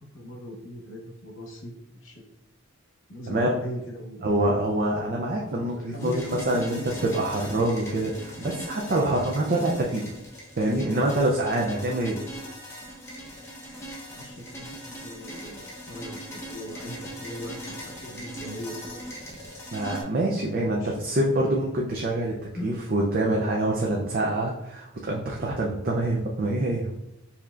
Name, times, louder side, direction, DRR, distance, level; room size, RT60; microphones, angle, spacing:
voice 1, 0.1-1.7 2.0-2.2 3.1-4.8 5.7-7.2 7.9-8.1 14.1-19.0 20.7-21.0 22.5-22.8, equal, 70° left, 1 dB, 1.0 m, -39 dB
voice 2, 4.2-6.8 7.1-10.0 10.6-12.2 19.7-22.3 22.6-26.9, right 1 dB, 45° right, -2 dB, 0.5 m, -25 dB
sound 1, 6.0-20.0, equal, 15° left, 0.8 m, -40 dB
6.6 x 2.8 x 2.4 m, 0.87 s
head